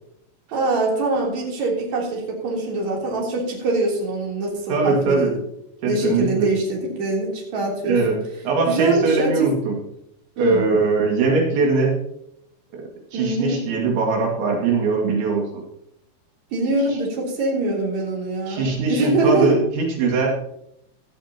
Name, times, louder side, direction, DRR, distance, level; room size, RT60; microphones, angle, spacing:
voice 1, 0.5-5.3 5.8-8.2 8.7-9.5 10.4-10.6 13.1-13.6 16.5-19.6, right 2 dB, 40° right, -3 dB, 4.3 m, -23 dB
voice 2, 4.7-5.3 5.8-6.5 7.8-8.2 8.4-9.8 10.4-11.9 12.7-12.8 13.1-15.6 16.9-17.0 18.5-20.3, right 4 dB, 75° right, -1 dB, 4.5 m, -21 dB
16.5 x 13.0 x 2.9 m, 0.76 s
omnidirectional pair, 5.2 m